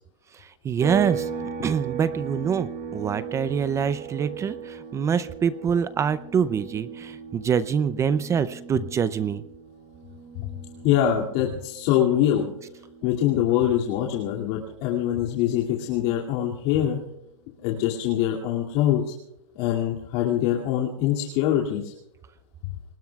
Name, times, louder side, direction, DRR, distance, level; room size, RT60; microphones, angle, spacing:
voice 1, 0.6-1.3 1.6-9.4, right 7 dB, 15° right, 14 dB, 0.5 m, -25 dB
sound 1, 0.8-14.4 14.7-16.9, right 7 dB, 40° right, 5.0 m, -38 dB
voice 2, 10.8-12.5 13.0-17.0 17.6-19.0 19.6-21.9, left 11 dB, 50° left, -2 dB, 2.5 m, -24 dB
29.5 x 20.0 x 2.4 m, 0.84 s
supercardioid pair, 145°, 17 cm